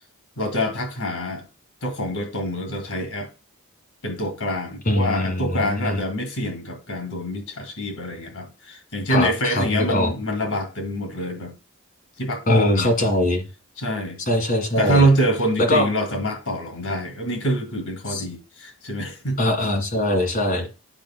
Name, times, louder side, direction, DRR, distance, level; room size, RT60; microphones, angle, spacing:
voice 1, 0.4-1.4 1.8-3.3 4.0-11.5 12.2-13.1 13.8-14.2 14.8-19.4, equal, 85° left, 2.5 m, -25 dB
voice 2, 4.9-6.0 9.1-10.1 12.5-13.4 14.3-15.1 15.7-15.9 18.1-18.2 19.4-20.7, left 1 dB, 40° left, 1.8 m, -22 dB
9.0 x 5.2 x 2.2 m
head